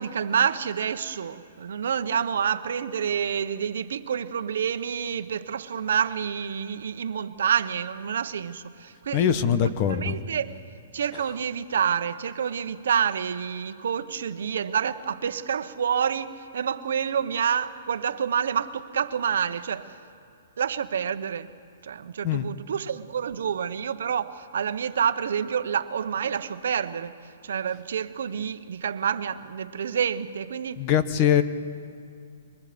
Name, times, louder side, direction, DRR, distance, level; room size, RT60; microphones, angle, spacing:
voice 1, 0.0-10.6 10.9-20.0 20.6-21.5 21.8-30.8, right 7 dB, 70° right, 1.1 m, -28 dB
voice 2, 9.1-10.1 22.2-22.5 30.8-31.4, left 9 dB, 35° left, 1.1 m, -22 dB
29.0 x 23.5 x 5.2 m
hypercardioid pair, 150°, 0 cm